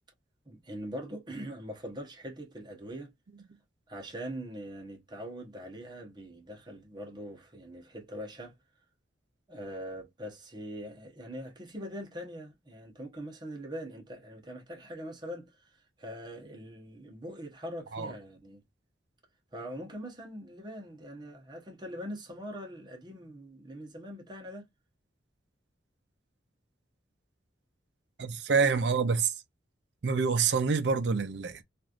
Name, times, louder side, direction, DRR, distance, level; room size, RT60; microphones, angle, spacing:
voice 1, 0.5-3.1 3.9-8.6 9.5-18.6 19.5-24.7, equal, 25° right, 0.9 m, -42 dB
voice 2, 28.2-29.3 30.0-31.6, right 5 dB, 65° right, 0.5 m, -27 dB
3.0 x 2.5 x 2.4 m
head